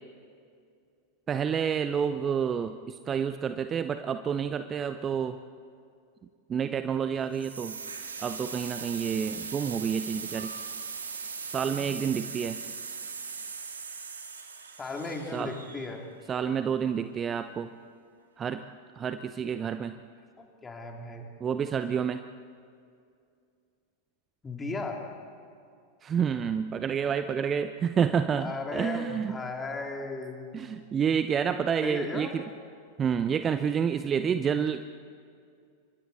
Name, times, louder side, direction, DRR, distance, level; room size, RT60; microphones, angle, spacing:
voice 1, 1.3-5.4 6.5-7.8 8.2-10.5 11.5-12.6 15.3-15.5 16.3-17.7 18.4-18.6 19.0-19.9 21.4-22.2 26.0-29.4 30.5-32.4 33.0-34.9, right 7 dB, 25° right, 10 dB, 0.7 m, -29 dB
sound 1, 7.3-16.2, right 5 dB, 70° right, 2.4 m, -39 dB
voice 2, 11.6-12.1 14.8-16.0 20.4-21.3 24.4-25.0 28.4-30.6 31.8-32.3, left 3 dB, 15° left, 2 dB, 3.1 m, -36 dB
29.0 x 25.5 x 4.3 m, 2.3 s
figure-of-eight pair, 90°, 0 cm